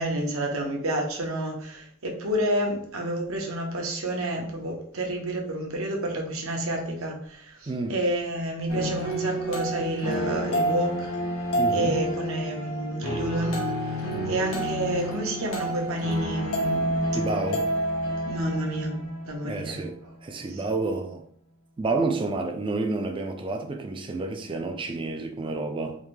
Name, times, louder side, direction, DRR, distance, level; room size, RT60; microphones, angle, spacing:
voice 1, 0.0-11.1 11.7-13.6 14.3-17.1 18.3-19.8 20.5-20.6, right 1 dB, 70° right, 0.8 m, -29 dB
sound 1, 8.7-19.7, right 1 dB, 75° left, 1.2 m, -29 dB
voice 2, 11.6-11.9 14.1-14.4 17.1-17.7 19.4-21.2 21.8-26.0, right 3 dB, 25° right, 0.4 m, -30 dB
3.6 x 2.6 x 3.1 m
head